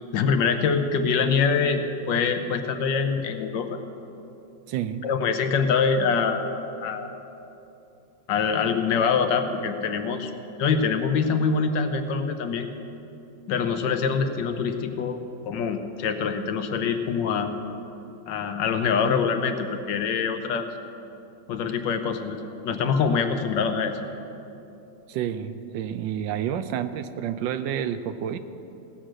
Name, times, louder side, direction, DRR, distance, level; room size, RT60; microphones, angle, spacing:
voice 1, 0.1-3.7 5.0-6.5 6.8-7.1 8.3-10.3 10.6-12.7 13.5-15.2 15.4-17.5 18.3-20.7 21.5-22.4 22.6-24.0, left 5 dB, 75° left, 7 dB, 1.5 m, -24 dB
voice 2, 4.7-5.0 25.1-28.4, right 9 dB, 80° right, 11 dB, 1.3 m, -29 dB
16.5 x 6.4 x 7.5 m, 2.9 s
omnidirectional pair, 2.0 m